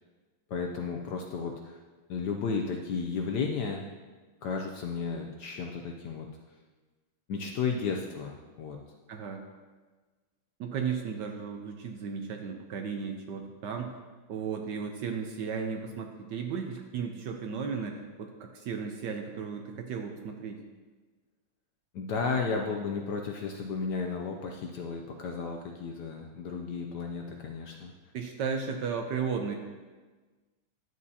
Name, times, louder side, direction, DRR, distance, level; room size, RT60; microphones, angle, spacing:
voice 1, 0.5-1.8 2.1-3.8 4.4-6.3 7.3-8.8 21.9-27.9, left 5 dB, 70° left, 2 dB, 1.0 m, -33 dB
voice 2, 9.1-9.5 10.6-14.0 14.3-20.6 28.1-29.6, right 6 dB, 70° right, 4 dB, 1.1 m, -35 dB
11.0 x 7.7 x 2.8 m, 1.3 s
omnidirectional pair, 2.3 m